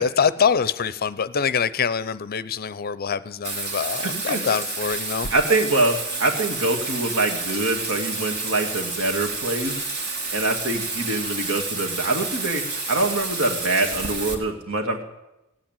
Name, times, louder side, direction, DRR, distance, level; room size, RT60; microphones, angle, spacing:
voice 1, 0.0-5.3, left 6 dB, 45° left, 16 dB, 0.6 m, -24 dB
Bathtub (filling or washing), 3.4-14.3, right 3 dB, 50° right, 2.3 m, -30 dB
voice 2, 4.0-4.6 5.3-9.7 10.3-12.6 12.9-15.0, right 2 dB, 65° right, 3 dB, 2.2 m, -24 dB
17.0 x 8.8 x 9.0 m, 0.93 s
head